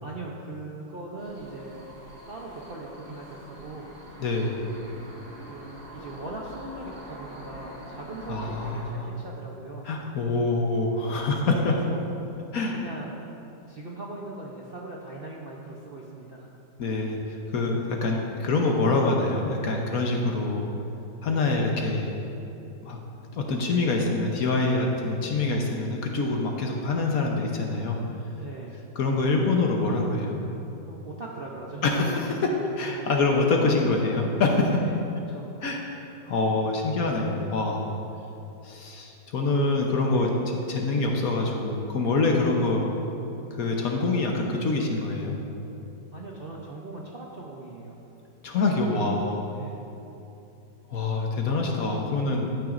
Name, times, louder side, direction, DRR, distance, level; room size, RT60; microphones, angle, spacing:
voice 1, 0.0-1.9 2.3-3.9 5.0-5.1 5.4-9.9 11.7-12.0 12.7-13.2 13.7-16.5 21.2-21.4 28.4-28.8 30.9-31.9 32.9-33.0 34.7-35.5 40.1-40.4 46.1-48.0 49.5-49.8, right 2 dB, 50° right, -3 dB, 0.7 m, -40 dB
sound 1, 1.2-8.8, right 1 dB, 30° right, 2.2 m, -44 dB
voice 2, 4.2-4.5 8.3-9.1 9.8-11.7 12.5-12.7 16.8-20.7 21.2-22.1 22.8-23.0 23.4-28.0 29.0-30.4 31.8-34.8 35.6-35.8 36.3-37.9 38.6-42.9 43.6-45.4 48.4-49.4 50.9-52.5, left 3 dB, 60° left, 1 dB, 1.3 m, -25 dB
13.5 x 8.9 x 2.6 m, 2.9 s
omnidirectional pair, 1.9 m